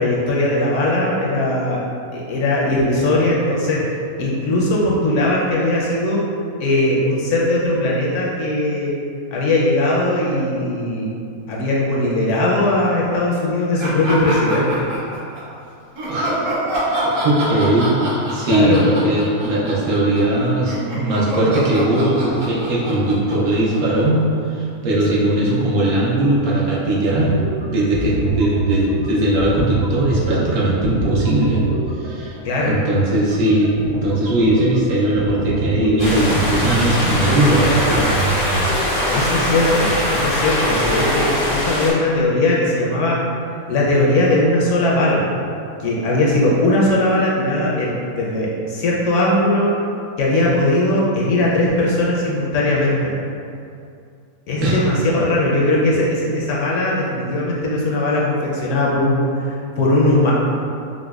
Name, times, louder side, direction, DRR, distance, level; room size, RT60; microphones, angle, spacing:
voice 1, 0.0-1.8 2.1-3.8 4.2-6.2 6.6-8.9 9.3-11.1 11.5-14.9 18.5-18.8 25.1-25.3 32.4-32.7 39.1-43.2 43.7-45.2 45.8-49.7 50.2-53.1 54.5-60.3, left 1 dB, 70° left, -4 dB, 0.8 m, -19 dB
Laughter, 13.8-15.5 15.9-20.3 20.6-24.2, right 1 dB, 65° right, 1.2 m, -26 dB
voice 2, 16.1-16.5 17.2-17.9 18.3-24.2 24.5-31.6 32.0-38.1 54.6-54.8, right 1 dB, 85° right, -6 dB, 1.2 m, -19 dB
sound 1, 27.1-38.8, right 3 dB, 45° right, 0.3 m, -26 dB
sound 2, 36.0-41.9, left 1 dB, 90° left, 1.4 m, -21 dB
4.9 x 2.1 x 2.3 m, 2.5 s
omnidirectional pair, 1.5 m